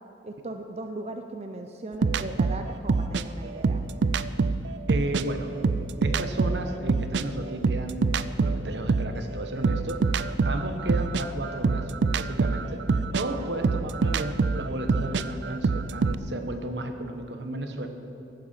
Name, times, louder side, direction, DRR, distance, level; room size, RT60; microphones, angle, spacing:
voice 1, 0.2-3.8 13.4-13.5, right 2 dB, 40° right, 6 dB, 0.6 m, -38 dB
sound 1, 2.0-5.3 5.6-9.2 9.6-16.2, right 4 dB, 90° right, 0.5 m, -25 dB
voice 2, 4.9-5.5 6.0-10.0 10.4-17.9, right 1 dB, 75° right, 6 dB, 1.4 m, -33 dB
16.0 x 12.0 x 5.9 m, 3.0 s
head